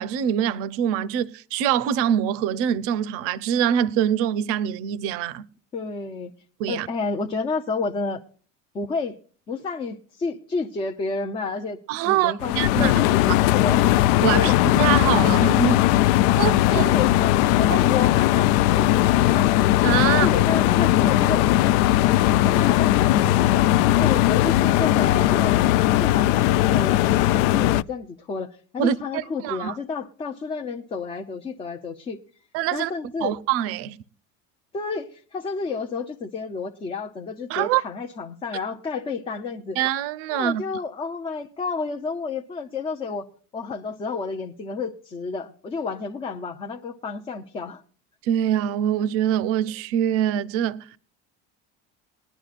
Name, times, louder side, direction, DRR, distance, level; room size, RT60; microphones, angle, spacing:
voice 1, 0.0-5.5 6.6-6.9 11.9-13.2 14.2-15.8 16.4-16.9 19.8-20.3 28.8-29.8 32.5-32.9 33.2-34.0 37.5-37.8 39.8-40.6 48.2-50.9, right 10 dB, 50° right, 0.6 m, -24 dB
voice 2, 5.7-6.3 6.7-8.2 8.7-9.2 9.5-11.8 12.1-14.1 14.3-14.6 16.7-19.5 20.1-21.5 22.4-23.7 24.0-25.6 25.9-32.2 32.7-33.4 34.7-39.8 40.3-43.3 43.5-47.8, left 4 dB, 20° left, 0.5 m, -30 dB
sound 1, 12.4-27.8, left 15 dB, 80° left, 0.5 m, -19 dB
20.5 x 11.0 x 2.5 m
cardioid pair, 180°, 30 cm